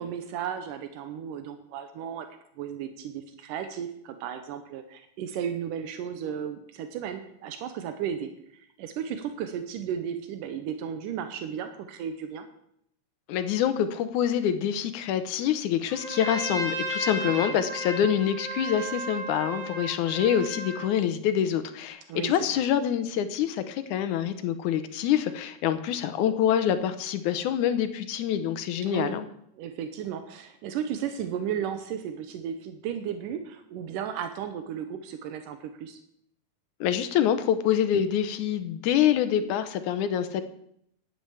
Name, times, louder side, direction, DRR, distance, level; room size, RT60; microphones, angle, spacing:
voice 1, 0.0-2.3 2.6-12.5 17.2-17.6 22.1-22.3 28.8-29.2 29.6-36.0, right 8 dB, 85° right, 8 dB, 2.5 m, -34 dB
voice 2, 13.3-29.2 36.8-40.4, left 9 dB, 75° left, 10 dB, 2.2 m, -26 dB
Trumpet, 15.9-20.9, right 1 dB, 50° right, 3.5 m, -34 dB
10.5 x 8.9 x 7.1 m, 0.72 s
omnidirectional pair, 3.7 m